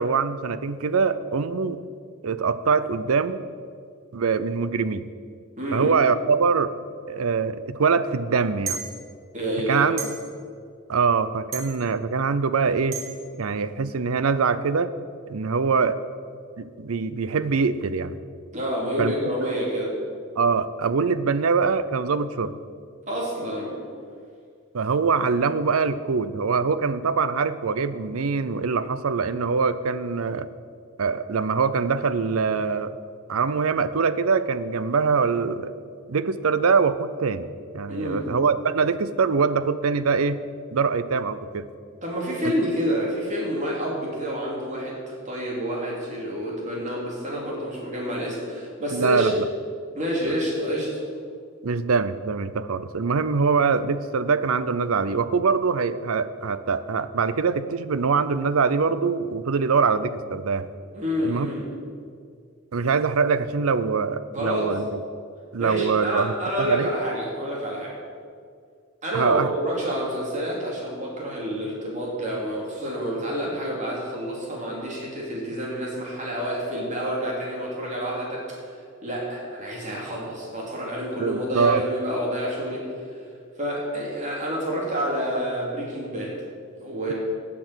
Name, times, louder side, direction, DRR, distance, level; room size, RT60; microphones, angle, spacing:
voice 1, 0.0-1.8 2.2-3.4 4.1-5.1 5.7-6.7 7.1-8.8 9.7-10.0 10.9-13.0 13.4-14.9 15.3-16.0 16.6-18.2 19.0-19.1 20.4-22.5 24.7-30.5 31.0-33.0 33.3-35.7 36.1-37.5 37.7-40.4 40.7-41.7 48.9-49.5 51.6-60.7 61.2-61.5 62.7-64.9 65.5-66.3 66.6-66.9 69.1-69.5 81.2-81.8, right 5 dB, 85° right, 14 dB, 0.6 m, -23 dB
voice 2, 5.6-6.0 9.3-9.9 18.5-20.0 23.1-23.8 37.9-38.3 42.0-49.3 49.9-51.0 60.9-61.7 64.3-64.7 65.6-68.0 69.0-83.2 83.6-86.4 86.8-87.1, equal, 35° right, -4 dB, 3.4 m, -28 dB
sound 1, 8.7-8.9 10.0-10.1 11.5-11.7 12.9-13.0, right 6 dB, 70° right, 2.2 m, -29 dB
17.0 x 6.1 x 6.3 m, 2.2 s
head